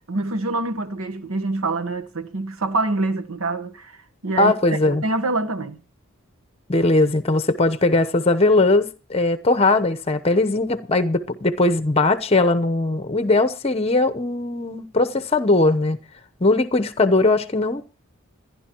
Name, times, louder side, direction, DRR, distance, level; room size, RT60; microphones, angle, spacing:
voice 1, 0.1-5.8, right 2 dB, 75° right, 1.1 m, -26 dB
voice 2, 4.4-5.0 6.7-16.0 16.4-17.8, left 2 dB, 30° left, 0.9 m, -19 dB
27.5 x 10.5 x 3.0 m
head